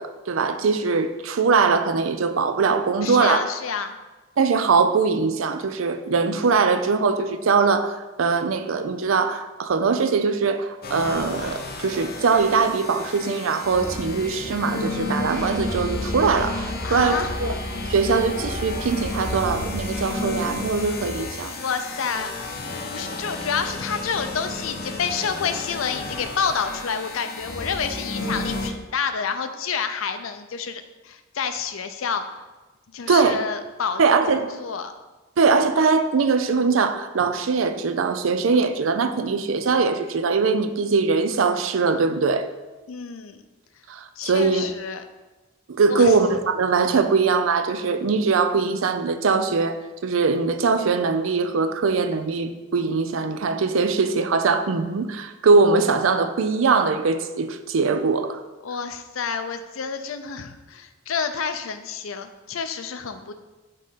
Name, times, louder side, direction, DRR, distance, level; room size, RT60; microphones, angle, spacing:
voice 1, 0.0-3.4 4.4-17.5 17.9-21.5 33.1-33.4 34.0-34.5 35.4-42.5 43.9-44.7 45.7-49.8 50.0-58.4, right 4 dB, 80° right, 10 dB, 0.5 m, -21 dB
voice 2, 3.0-3.9 16.8-17.4 21.6-22.3 22.9-32.2 32.9-34.9 42.9-43.4 44.2-45.0 45.9-46.2 58.6-63.3, left 6 dB, 90° left, 9 dB, 0.5 m, -29 dB
sound 1, 10.8-28.7, left 2 dB, 50° left, 0.8 m, -31 dB
5.3 x 3.8 x 5.6 m, 1.2 s
head